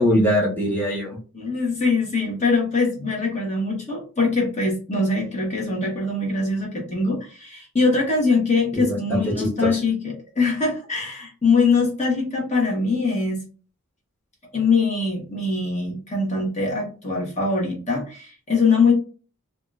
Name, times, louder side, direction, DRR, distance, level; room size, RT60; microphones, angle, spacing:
voice 1, 0.0-1.2 8.7-9.8, equal, 10° left, -6 dB, 1.0 m, -22 dB
voice 2, 1.3-13.4 14.5-18.9, left 4 dB, 35° left, -2 dB, 1.0 m, -22 dB
3.6 x 2.4 x 2.3 m, 0.36 s
head